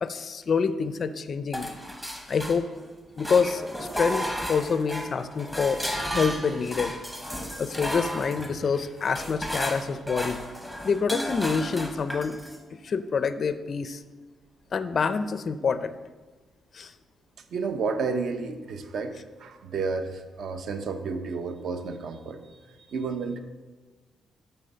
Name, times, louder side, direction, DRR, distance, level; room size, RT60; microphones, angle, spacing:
voice 1, 0.0-1.7 2.3-2.7 3.2-6.9 7.6-10.4 10.8-12.4 12.7-14.0 14.7-16.0 16.7-16.9, left 5 dB, 35° left, 12 dB, 0.4 m, -27 dB
sound 1, 1.5-2.9 3.2-12.6, equal, 5° right, 0.9 m, -34 dB
voice 2, 17.5-23.4, right 4 dB, 55° right, 8 dB, 0.7 m, -31 dB
11.5 x 4.5 x 6.7 m, 1.3 s
cardioid pair, 165°, 0 cm